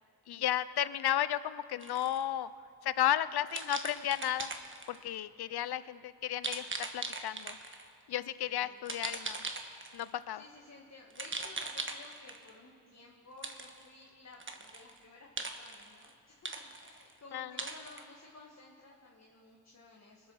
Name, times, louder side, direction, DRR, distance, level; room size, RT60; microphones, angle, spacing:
voice 1, 0.3-2.5 2.8-4.5 4.9-6.6 6.9-7.6 8.1-9.4 9.9-10.4 17.3-17.5, left 11 dB, 65° left, 16 dB, 0.6 m, -33 dB
sound 1, 1.8-2.2 3.5-5.0 6.4-7.9 8.9-10.1 11.1-12.5 13.4-13.9 14.3-15.0 15.4-16.1 16.5-17.1 17.6-18.0, right 3 dB, 30° right, 1.3 m, -40 dB
voice 2, 8.4-8.8 10.3-20.3, left 3 dB, 40° left, -2 dB, 1.7 m, -55 dB
21.0 x 7.1 x 6.4 m, 2.5 s
cardioid pair, 55°, 41 cm